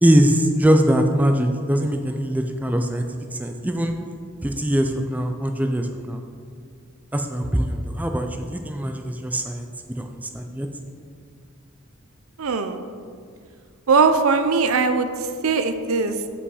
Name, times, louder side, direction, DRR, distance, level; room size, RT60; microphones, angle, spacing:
voice 1, 0.0-3.1 3.4-3.9 4.4-6.2 7.1-9.7 10.0-10.7, equal, 5° right, 5 dB, 0.4 m, -22 dB
voice 2, 12.4-12.8 13.9-15.1 15.4-16.2, right 4 dB, 75° right, 8 dB, 0.6 m, -19 dB
7.7 x 5.5 x 4.8 m, 2.2 s
head